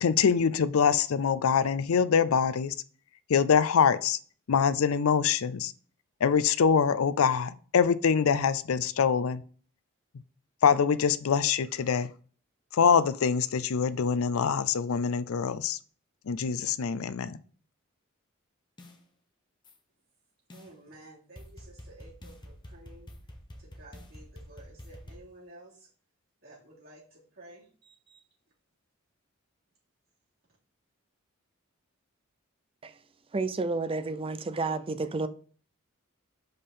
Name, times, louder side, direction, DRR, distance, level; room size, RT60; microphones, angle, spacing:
voice 1, 0.0-2.7 3.3-4.2 4.5-5.7 6.2-9.4 10.6-12.1 12.7-15.8 16.3-17.3, left 6 dB, 80° left, 0.4 m, -24 dB
sound 1, 18.8-19.0 19.6-19.7 20.5-20.7 21.4-25.2, equal, 20° left, 1.0 m, -47 dB
voice 2, 20.5-23.1 23.6-25.9 26.4-28.2, right 1 dB, 45° right, 3.4 m, -53 dB
voice 3, 33.3-35.3, right 3 dB, 25° right, 0.4 m, -31 dB
5.5 x 5.2 x 4.2 m
head